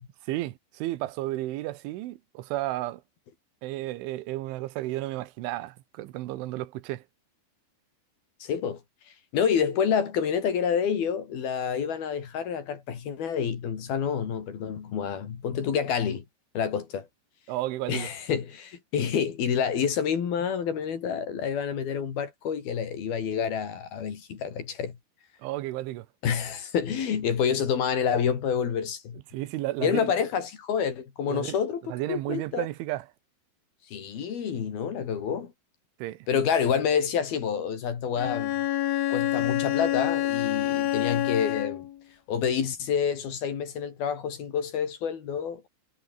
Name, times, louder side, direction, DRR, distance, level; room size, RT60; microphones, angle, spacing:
voice 1, 0.3-3.0 3.6-7.0 17.5-18.1 25.4-26.1 29.3-30.1 31.3-31.6 31.9-33.1 36.0-36.3, right 16 dB, 90° right, 3.6 m, -32 dB
voice 2, 8.4-8.8 9.3-16.2 16.5-17.1 17.9-25.0 26.2-29.2 29.8-32.7 33.9-35.5 36.3-38.6 39.1-41.9 42.3-45.7, left 7 dB, 55° left, 4.7 m, -28 dB
Bowed string instrument, 38.2-42.0, left 13 dB, 90° left, 4.2 m, -27 dB
omnidirectional pair, 5.4 m